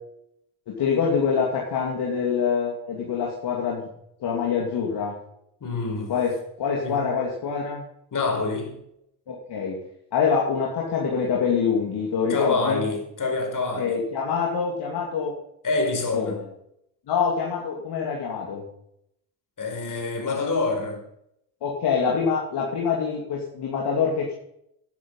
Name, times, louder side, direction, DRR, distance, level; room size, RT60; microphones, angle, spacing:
voice 1, 0.7-3.9 4.2-5.1 6.1-7.8 9.3-9.8 10.1-12.8 13.8-15.3 16.1-16.4 17.1-18.6 21.6-24.3, left 6 dB, 60° left, 2.9 m, -25 dB
voice 2, 5.6-6.1 6.8-7.1 8.1-8.8 12.3-14.0 15.6-16.4 19.6-21.0, left 3 dB, 45° left, 4.9 m, -26 dB
11.5 x 11.5 x 5.6 m
hypercardioid pair, 55°, 46 cm